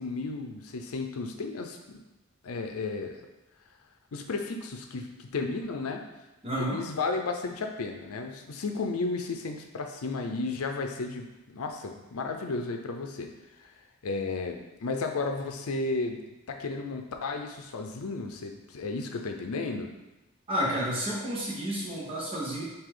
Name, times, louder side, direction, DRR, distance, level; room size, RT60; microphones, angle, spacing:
voice 1, 0.0-1.8 2.4-3.1 4.1-6.0 6.6-13.3 13.6-13.7 14.0-16.2 16.5-19.9, left 3 dB, 90° left, 4 dB, 0.6 m, -33 dB
voice 2, 6.4-6.8 20.5-22.6, equal, 25° right, -6 dB, 1.2 m, -30 dB
4.9 x 2.8 x 3.8 m, 1.0 s
head